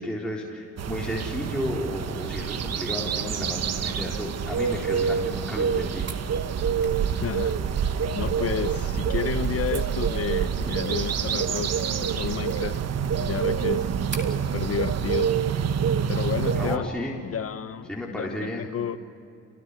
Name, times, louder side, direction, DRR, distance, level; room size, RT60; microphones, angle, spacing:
voice 1, 0.0-6.0 16.5-17.2 17.9-18.7, left 1 dB, 5° left, -4 dB, 4.1 m, -32 dB
sound 1, 0.8-16.8, right 7 dB, 55° right, 1.3 m, -27 dB
Mechanisms, 6.1-14.4, right 4 dB, 35° right, 3.9 m, -47 dB
voice 2, 7.1-7.6 8.1-12.8 13.2-14.0 14.4-15.3 16.1-16.9 17.2-19.0, left 8 dB, 50° left, 11 dB, 0.9 m, -31 dB
sound 2, 7.3-14.3, right 1 dB, 20° right, 7.2 m, -51 dB
30.0 x 19.0 x 9.9 m, 2.6 s
cardioid pair, 90°, 30 cm